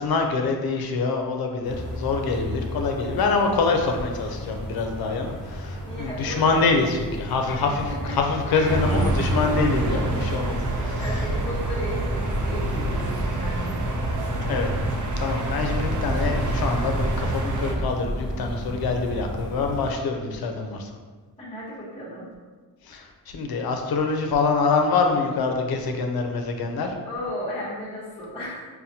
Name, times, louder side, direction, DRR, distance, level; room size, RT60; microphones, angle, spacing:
voice 1, 0.0-11.2 14.5-14.7 15.2-20.9 22.9-23.1 23.3-26.9, left 4 dB, 65° left, 3 dB, 0.6 m, -25 dB
sound 1, 1.6-19.9, equal, ahead, 0.8 m, -34 dB
voice 2, 5.8-6.8 7.4-8.2 8.5-8.7 11.0-14.0 21.4-22.3 27.0-28.7, equal, 15° left, -8 dB, 1.0 m, -35 dB
sound 2, 8.6-17.7, right 1 dB, 50° right, 0.5 m, -26 dB
5.5 x 2.2 x 2.7 m, 1.4 s
wide cardioid pair, 155°, 39 cm